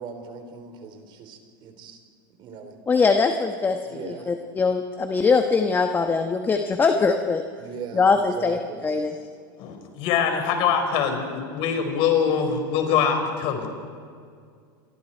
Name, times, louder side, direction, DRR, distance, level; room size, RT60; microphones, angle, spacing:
voice 1, 0.0-2.0 2.4-2.7 3.9-4.4 7.6-9.0, right 5 dB, 45° right, 6 dB, 3.6 m, -39 dB
voice 2, 2.9-7.4 7.9-9.1, left 4 dB, 20° left, 6 dB, 1.2 m, -22 dB
voice 3, 9.6-13.7, left 7 dB, 50° left, 5 dB, 4.7 m, -23 dB
28.5 x 23.5 x 4.5 m, 2.2 s
supercardioid pair, 125°, 11 cm